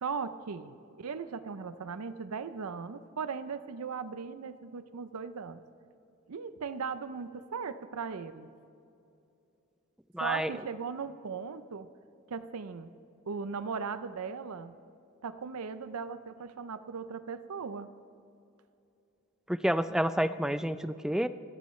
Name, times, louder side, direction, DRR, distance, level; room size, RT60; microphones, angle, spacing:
voice 1, 0.0-5.6 6.3-8.5 10.2-11.9 12.3-12.9 13.3-14.7 15.2-17.9, right 5 dB, 85° right, 12 dB, 0.5 m, -38 dB
voice 2, 10.1-10.5 19.5-21.3, equal, 5° right, 12 dB, 0.3 m, -29 dB
24.5 x 14.0 x 3.2 m, 2.7 s
head